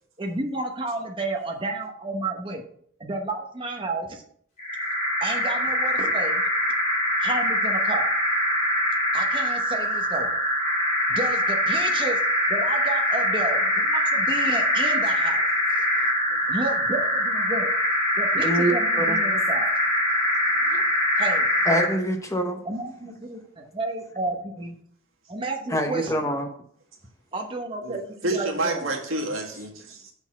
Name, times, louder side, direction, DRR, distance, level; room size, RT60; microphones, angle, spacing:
voice 1, 0.2-2.6 3.0-4.2 5.2-6.4 7.2-8.1 9.1-10.3 11.1-12.2 12.5-15.5 16.5-17.7 18.2-19.7 21.2-21.5 22.6-24.8 25.3-26.1 27.3-28.9, right 2 dB, 25° right, 1 dB, 0.9 m, -31 dB
sound 1, 4.6-22.0, equal, 35° left, 3.0 m, -23 dB
voice 2, 21.6-22.6 25.7-26.5, equal, 15° left, 5 dB, 0.7 m, -25 dB
voice 3, 27.8-30.1, right 2 dB, 85° right, 0 dB, 1.7 m, -29 dB
6.9 x 4.0 x 5.8 m, 0.62 s
head